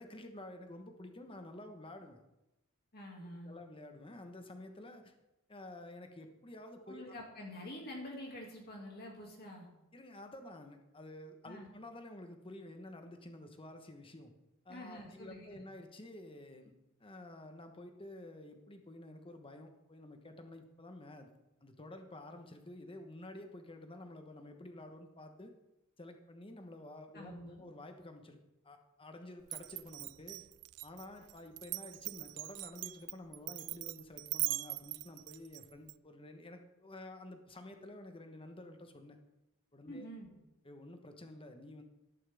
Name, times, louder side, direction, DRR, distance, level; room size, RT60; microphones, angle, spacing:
voice 1, 0.0-2.2 3.4-5.1 5.5-7.1 9.9-14.3 14.6-16.7 17.0-21.3 21.6-25.5 26.0-28.4 28.6-30.4 30.8-39.2 39.7-40.1 40.6-41.8, left 1 dB, 25° left, 5 dB, 1.2 m, -50 dB
voice 2, 2.9-3.6 6.9-9.7 11.4-11.7 14.7-15.6 27.1-27.6 39.9-40.3, left 1 dB, 45° left, 0 dB, 2.5 m, -47 dB
Glass, 29.5-35.9, right 22 dB, 75° right, 0.3 m, -41 dB
12.5 x 11.0 x 3.6 m, 0.94 s
head